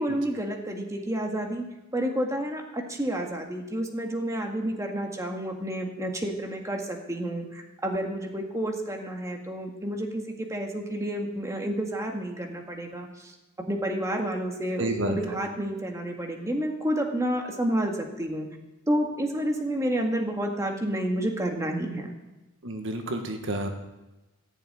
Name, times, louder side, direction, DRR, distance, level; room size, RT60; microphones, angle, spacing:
voice 1, 0.0-1.7 1.9-13.3 13.7-18.5 18.9-22.2, right 1 dB, 15° right, 2 dB, 1.8 m, -30 dB
voice 2, 14.8-15.1 22.6-23.7, right 1 dB, 60° right, 5 dB, 1.5 m, -30 dB
15.0 x 7.2 x 9.4 m, 1.1 s
head